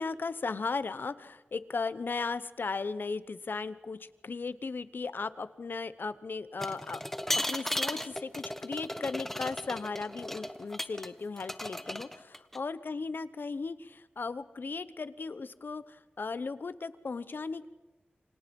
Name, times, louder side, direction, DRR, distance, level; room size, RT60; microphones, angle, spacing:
voice 1, 0.0-7.0 7.5-17.7, left 4 dB, 65° left, 15 dB, 0.9 m, -36 dB
sound 1, 6.6-11.1 11.4-12.6, equal, 5° left, 1.2 m, -35 dB
28.0 x 25.5 x 5.4 m, 1.2 s
wide cardioid pair, 80°, 4 cm